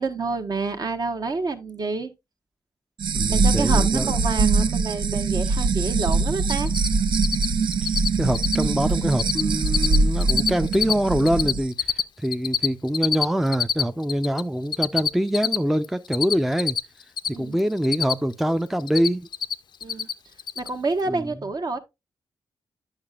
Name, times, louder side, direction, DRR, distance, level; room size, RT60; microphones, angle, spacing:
voice 1, 0.0-2.1 3.3-6.7 17.3-17.6 19.8-20.1 20.6-21.8, right 3 dB, 50° right, 1.0 m, -28 dB
sound 1, 3.0-11.6, right 4 dB, 75° right, 0.6 m, -22 dB
voice 2, 3.1-4.1 7.8-7.9 8.2-16.8 17.3-19.3 21.1-21.3, equal, 5° right, 0.4 m, -24 dB
Cricket, 6.0-6.1 6.4-6.9 7.1-7.5 7.7-8.1 8.3-8.6 8.9-9.4 9.7-10.9 11.2-14.4 14.7-17.3 17.6-18.4 18.7-19.5 19.8-20.1 20.4-20.7, left 7 dB, 60° left, 0.4 m, -24 dB
8.7 x 6.6 x 2.3 m
cardioid pair, 70°, 8 cm